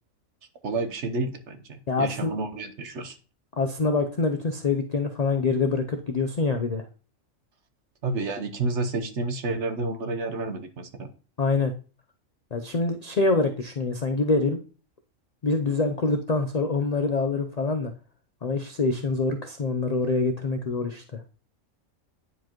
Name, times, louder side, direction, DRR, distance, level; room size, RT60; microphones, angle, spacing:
voice 1, 0.6-3.2 8.0-11.1, right 3 dB, 60° right, 8 dB, 1.2 m, -30 dB
voice 2, 1.9-2.3 3.6-6.9 11.4-11.7 12.5-14.6 15.4-17.9 18.4-21.2, left 3 dB, 50° left, 6 dB, 0.5 m, -25 dB
9.9 x 4.7 x 3.0 m, 0.36 s
omnidirectional pair, 1.4 m